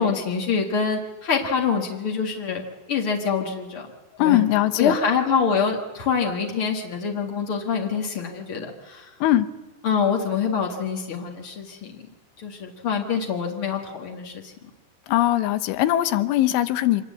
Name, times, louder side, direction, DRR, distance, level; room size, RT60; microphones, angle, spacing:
voice 1, 0.0-2.6 2.9-3.9 4.2-4.4 4.8-9.1 9.8-12.0 12.4-14.5, left 6 dB, 60° left, 1 dB, 1.4 m, -25 dB
voice 2, 4.2-5.0 9.2-9.5 15.1-17.1, left 14 dB, 80° left, 12 dB, 3.4 m, -20 dB
26.0 x 20.5 x 8.6 m, 1.2 s
omnidirectional pair, 5.5 m